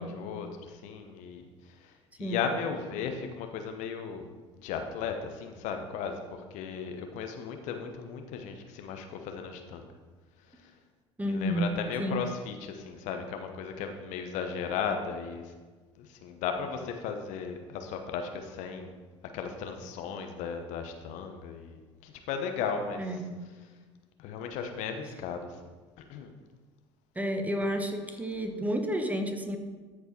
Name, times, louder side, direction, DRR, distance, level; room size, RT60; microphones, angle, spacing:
voice 1, 0.0-1.9 2.2-4.3 4.6-9.9 10.6-10.7 11.2-15.5 16.0-19.0 19.3-23.2 24.2-25.5 26.1-26.3, left 6 dB, 60° left, 5 dB, 0.9 m, -36 dB
voice 2, 11.2-11.7 12.0-12.2 23.0-23.4 27.1-29.6, equal, 10° right, 5 dB, 1.1 m, -31 dB
13.0 x 4.6 x 4.4 m, 1.4 s
hypercardioid pair, 70°, 15 cm